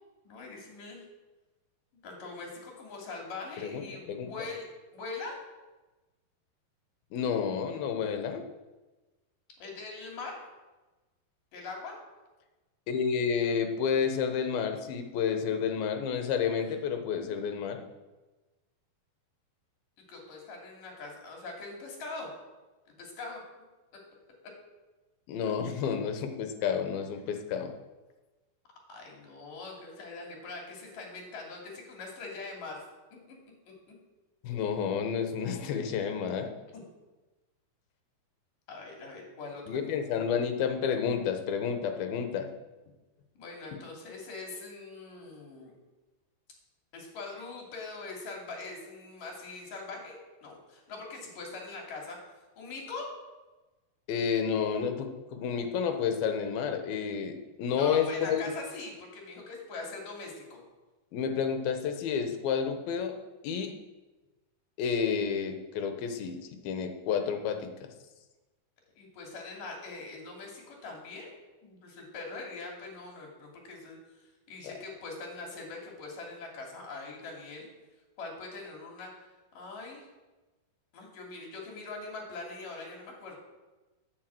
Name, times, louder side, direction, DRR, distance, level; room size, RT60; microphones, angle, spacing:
voice 1, 0.2-1.0 2.0-4.6 4.9-5.4 9.6-10.4 11.5-12.0 20.1-22.3 22.9-23.4 28.9-32.8 33.3-33.4 36.7-36.8 38.7-40.1 43.4-45.7 46.9-52.2 52.6-53.1 57.7-60.6 69.0-71.3 71.6-74.0 74.5-77.7 78.2-79.2 79.5-80.1 80.9-83.4, left 3 dB, 60° left, -1 dB, 4.3 m, -42 dB
voice 2, 3.6-4.3 7.1-8.4 12.9-17.8 25.3-27.7 34.4-36.5 39.7-42.5 54.1-58.4 61.1-63.1 63.4-63.7 64.8-66.4 66.6-67.9 74.6-74.7, left 7 dB, 75° left, 6 dB, 2.9 m, -30 dB
9.5 x 9.5 x 7.6 m, 1.2 s
omnidirectional pair, 4.4 m